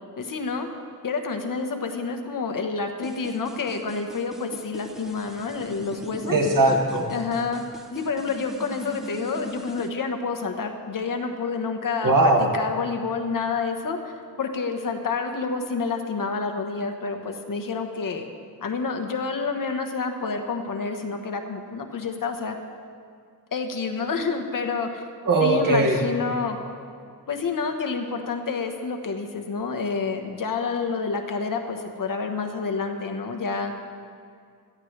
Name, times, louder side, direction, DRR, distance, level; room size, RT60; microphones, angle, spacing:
voice 1, 0.2-0.7 1.0-6.4 7.1-7.6 7.9-14.1 14.4-18.3 18.6-22.6 23.5-25.0 25.4-26.6 27.3-33.7, left 4 dB, 60° left, 4 dB, 1.2 m, -28 dB
sound 1, 3.0-9.9, equal, ahead, 1.2 m, -39 dB
voice 2, 6.3-7.1 12.0-12.5 25.2-26.0, right 2 dB, 60° right, 0 dB, 2.2 m, -19 dB
17.5 x 13.0 x 3.3 m, 2.2 s
wide cardioid pair, 95°, 36 cm